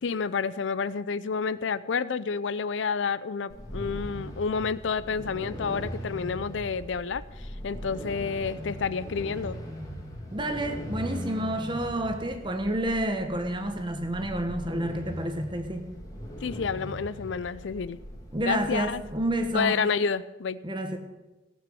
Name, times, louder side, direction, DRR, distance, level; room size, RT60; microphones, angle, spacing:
voice 1, 0.0-9.6 16.4-18.0 18.4-19.0 19.5-20.6, left 5 dB, 75° left, 16 dB, 0.5 m, -29 dB
sound 1, 3.5-19.5, equal, 20° left, 1.9 m, -40 dB
voice 2, 10.3-15.9 18.3-19.8 20.6-21.0, right 1 dB, 25° right, 6 dB, 1.2 m, -29 dB
17.0 x 6.0 x 7.7 m, 1.1 s
head